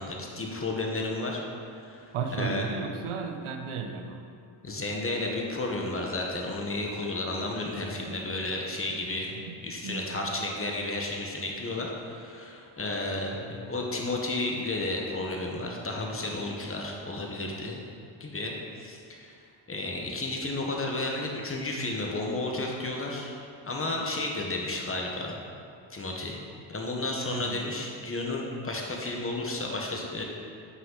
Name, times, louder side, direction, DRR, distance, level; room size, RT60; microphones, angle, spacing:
voice 1, 0.0-1.4 1.7-2.7 4.6-9.3 9.6-17.8 18.2-18.5 18.8-19.4 19.7-23.4 23.7-25.4 25.9-26.4 26.7-30.2, left 2 dB, 25° left, -1 dB, 1.2 m, -32 dB
voice 2, 2.1-4.2 7.9-9.0 9.3-10.3 27.3-27.7, right 5 dB, 85° right, 5 dB, 0.8 m, -36 dB
8.0 x 5.7 x 3.9 m, 2.4 s
cardioid pair, 95°, 48 cm